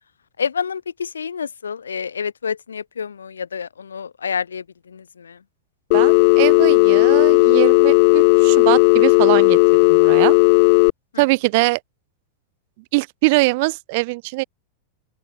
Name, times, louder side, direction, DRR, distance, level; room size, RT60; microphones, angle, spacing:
voice 1, 0.4-5.4 11.1-11.2, left 6 dB, 70° left, 4.9 m, -28 dB
Telephone, 5.9-10.9, left 33 dB, 45° left, 0.7 m, -14 dB
voice 2, 5.9-9.6 9.9-10.3 11.2-11.8 12.9-14.4, right 25 dB, 50° right, 1.7 m, -22 dB
open air
figure-of-eight pair, 90°, 0 cm